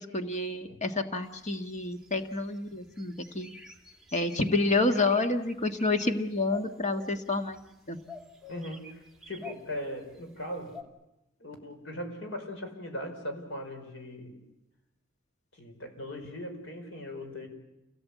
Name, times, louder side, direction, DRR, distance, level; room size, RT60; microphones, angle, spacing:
voice 1, 0.0-3.5 4.1-7.6 7.9-8.0, left 2 dB, 40° left, 6 dB, 1.6 m, -29 dB
sound 1, 1.3-2.6 3.0-4.5 4.9-5.3 5.7-6.2 6.4-7.7 8.1-10.2 10.7-10.8, left 3 dB, 5° right, 2.4 m, -47 dB
voice 2, 8.5-10.8 11.4-14.4 15.5-17.5, left 1 dB, 75° left, 5 dB, 5.1 m, -39 dB
28.5 x 18.0 x 8.4 m, 0.95 s
head